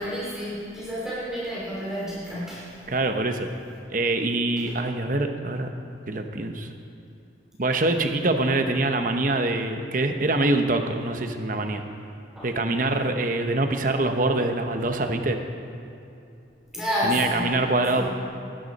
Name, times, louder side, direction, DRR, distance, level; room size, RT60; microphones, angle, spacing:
voice 1, 0.0-2.9 4.6-4.7 12.3-12.5 12.8-13.0 16.7-17.6 17.9-18.1, equal, 5° right, -9 dB, 3.1 m, -30 dB
voice 2, 2.9-3.5 3.9-5.7 6.1-6.7 7.6-11.8 12.4-15.4 17.0-18.1, right 2 dB, 45° right, 6 dB, 0.9 m, -24 dB
19.0 x 12.0 x 4.2 m, 2.7 s
head